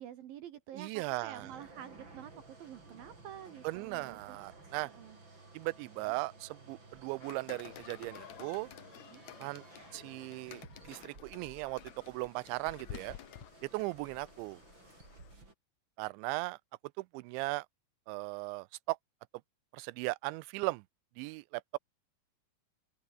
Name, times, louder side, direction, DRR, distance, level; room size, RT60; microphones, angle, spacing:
voice 1, 0.0-4.4 4.8-5.2 6.1-6.2 9.1-9.2, right 10 dB, 65° right, 2.6 m, -48 dB
voice 2, 0.7-1.5 3.6-4.9 5.5-8.7 9.4-9.6 9.9-10.6 10.9-11.8 12.1-13.2 13.6-14.6 16.0-16.6 17.0-17.7 18.1-19.0 19.7-20.8 21.2-21.8, right 23 dB, 85° right, 2.9 m, -37 dB
sound 1, 1.4-15.5, right 3 dB, 25° right, 6.1 m, -56 dB
sound 2, 7.2-15.3, left 12 dB, 80° left, 1.6 m, -52 dB
open air
omnidirectional pair, 5.3 m